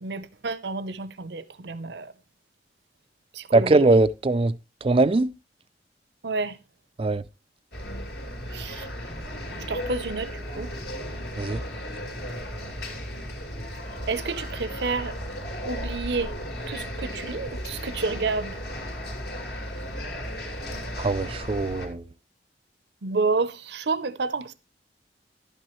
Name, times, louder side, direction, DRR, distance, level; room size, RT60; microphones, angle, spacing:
voice 1, 0.0-2.1 3.3-3.7 6.2-6.6 8.5-8.9 9.6-10.7 14.1-15.2 15.6-16.4 16.7-18.6 23.0-24.5, right 4 dB, 70° right, 0.7 m, -30 dB
voice 2, 3.5-5.3 7.0-7.2 11.4-11.6 21.0-22.0, right 2 dB, 30° right, 0.4 m, -21 dB
sound 1, 7.7-21.9, equal, 65° left, 2.7 m, -35 dB
11.5 x 8.9 x 3.1 m
head